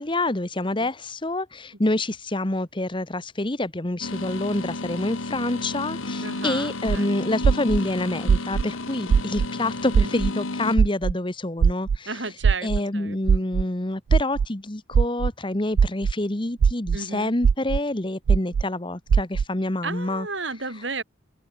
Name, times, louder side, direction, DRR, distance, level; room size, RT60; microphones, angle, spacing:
voice 1, 0.0-12.1 12.6-20.3, left 2 dB, 25° left, 1.1 m, -27 dB
sound 1, 4.0-10.8, left 2 dB, 90° left, 1.7 m, -32 dB
voice 2, 6.2-7.3 10.0-10.3 12.0-13.4 16.9-17.3 19.8-21.0, right 3 dB, 65° right, 5.1 m, -34 dB
sound 2, 6.9-7.0 7.4-7.8 8.3-8.6 9.1-9.5 9.9-10.3 10.8-11.1 11.6-12.0 12.4-12.8 13.3-13.6 14.1-14.5 14.9-15.3 15.8-16.1 16.6-17.0 17.4-17.8 18.3-18.6 19.1-19.4, right 6 dB, 85° right, 0.4 m, -18 dB
open air
head